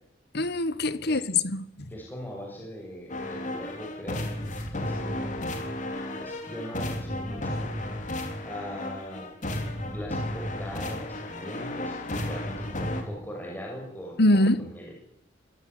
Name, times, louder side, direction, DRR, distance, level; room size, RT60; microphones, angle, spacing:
voice 1, 0.3-1.9 14.2-14.7, left 2 dB, 60° left, 1.4 m, -24 dB
voice 2, 1.9-5.3 6.1-7.6 8.4-9.3 9.9-14.9, equal, 10° left, 6.6 m, -40 dB
sound 1, 3.1-13.0, left 1 dB, 45° left, 4.0 m, -33 dB
25.5 x 15.5 x 9.6 m
head